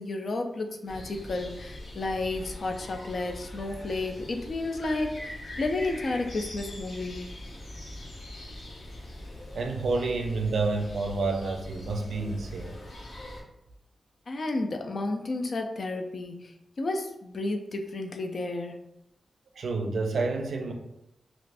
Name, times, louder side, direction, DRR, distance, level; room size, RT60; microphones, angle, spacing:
voice 1, 0.0-7.3 14.3-18.8, left 2 dB, 50° left, 4 dB, 0.3 m, -32 dB
birds of holland, 0.9-13.4, left 1 dB, 65° left, 0.7 m, -42 dB
voice 2, 9.5-12.7 19.5-20.7, right 3 dB, 85° right, 3 dB, 0.4 m, -29 dB
2.4 x 2.4 x 3.3 m, 0.83 s
wide cardioid pair, 160°, 0 cm